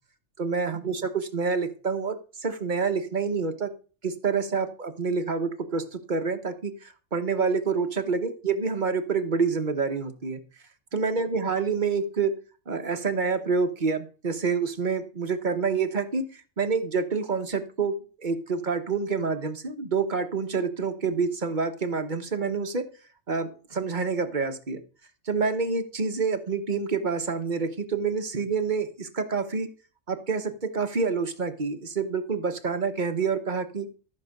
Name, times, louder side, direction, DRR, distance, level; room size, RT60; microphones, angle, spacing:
voice 1, 0.4-3.7 4.0-10.4 10.9-12.3 12.7-16.3 16.6-22.9 23.3-24.8 25.2-29.7 30.1-33.9, right 5 dB, 40° right, 8 dB, 1.3 m, -27 dB
13.5 x 4.9 x 6.6 m, 0.37 s
omnidirectional pair, 1.3 m